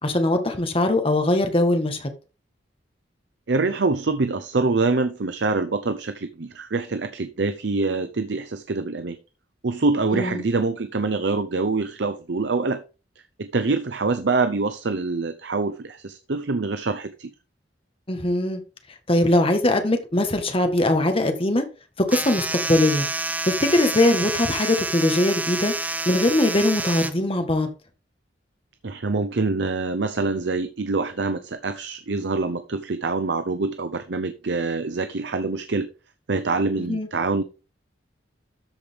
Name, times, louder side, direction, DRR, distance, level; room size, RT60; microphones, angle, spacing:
voice 1, 0.0-2.1 10.1-10.4 18.1-18.6 19.1-21.6 22.1-23.1 23.4-25.7 26.0-27.7 36.8-37.1, left 1 dB, 30° left, 1.6 m, -21 dB
voice 2, 3.5-9.2 9.6-12.8 13.4-17.3 28.8-35.9 36.3-37.4, right 3 dB, 75° right, 0.7 m, -25 dB
sound 1, 22.1-27.1, right 2 dB, 10° right, 0.7 m, -28 dB
13.0 x 5.1 x 3.6 m
head